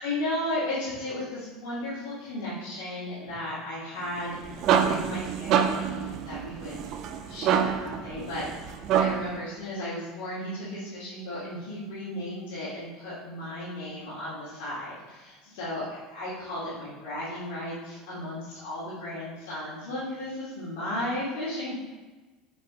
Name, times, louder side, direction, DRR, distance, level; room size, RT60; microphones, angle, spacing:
voice 1, 0.0-8.7 9.0-21.7, left 1 dB, 65° left, -9 dB, 2.3 m, -35 dB
sound 1, 4.2-9.4, right 8 dB, 50° right, 0.6 m, -27 dB
7.8 x 5.3 x 3.1 m, 1.2 s
figure-of-eight pair, 70°, 0 cm